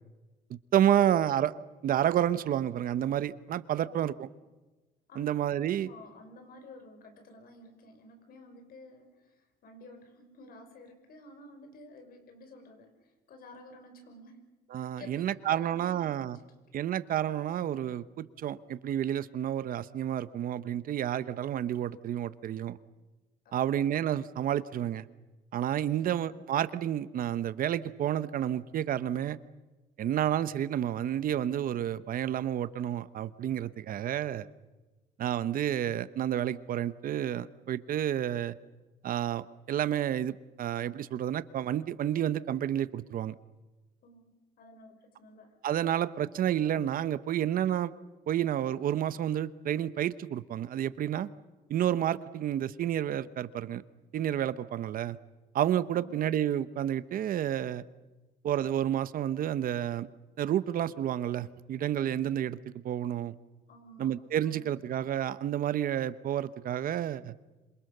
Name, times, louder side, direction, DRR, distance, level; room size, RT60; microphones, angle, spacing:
voice 1, 0.5-1.5 1.8-4.3 5.2-5.9 14.7-16.4 16.7-22.8 23.5-25.0 25.5-29.4 30.0-34.5 35.2-38.5 39.0-43.3 45.6-47.9 48.3-51.3 51.7-53.8 54.1-55.2 55.5-57.8 58.4-60.1 60.4-63.3 64.0-67.3, right 11 dB, 55° right, 15 dB, 1.0 m, -30 dB
voice 2, 5.7-14.4 15.0-16.3 23.4-23.8 25.8-26.2 44.0-44.3 44.6-45.6 54.6-54.9 55.9-56.3 63.7-64.1 64.4-64.7, left 1 dB, 60° left, 6 dB, 5.9 m, -52 dB
27.0 x 24.0 x 6.8 m, 1.2 s
cardioid pair, 110°, 17 cm